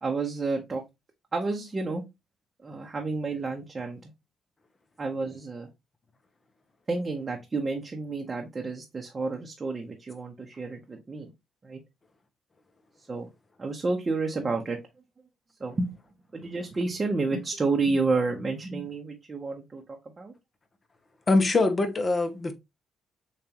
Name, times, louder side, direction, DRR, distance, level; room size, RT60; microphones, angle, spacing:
voice 1, 0.0-0.8 1.3-2.0 2.6-4.1 5.0-5.7 6.9-11.3 11.6-11.8 13.1-13.3 13.6-14.8 15.6-15.9 16.3-19.8 20.2-20.3, right 3 dB, 30° right, 1.0 m, -30 dB
voice 2, 21.3-22.5, left 2 dB, 30° left, 1.0 m, -23 dB
7.0 x 2.6 x 2.9 m
cardioid pair, 90°, 0 cm